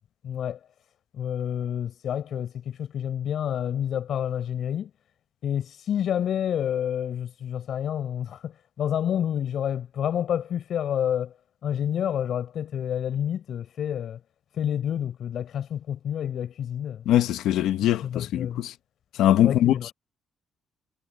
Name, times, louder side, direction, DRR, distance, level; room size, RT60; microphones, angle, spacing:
voice 1, 0.2-0.6 1.1-4.9 5.4-11.3 11.6-14.2 14.5-17.1 18.0-18.6 19.4-19.9, left 9 dB, 50° left, 6.5 m, -29 dB
voice 2, 17.0-18.7 19.2-19.9, left 12 dB, 75° left, 1.3 m, -22 dB
cardioid pair, 165°, 0 cm